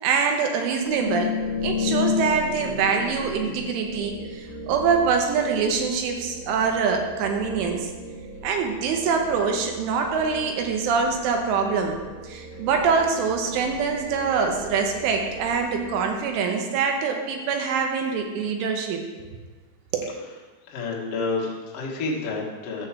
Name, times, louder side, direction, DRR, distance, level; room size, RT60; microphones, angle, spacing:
voice 1, 0.0-1.3 1.6-7.9 8.4-12.0 12.2-19.0 19.9-20.1, right 5 dB, 80° right, 3 dB, 3.5 m, -24 dB
sound 1, 0.8-16.6, left 4 dB, 50° left, 2.9 m, -34 dB
voice 2, 20.7-22.9, left 3 dB, 85° left, -3 dB, 1.3 m, -29 dB
11.0 x 4.6 x 7.4 m, 1.3 s
omnidirectional pair, 5.7 m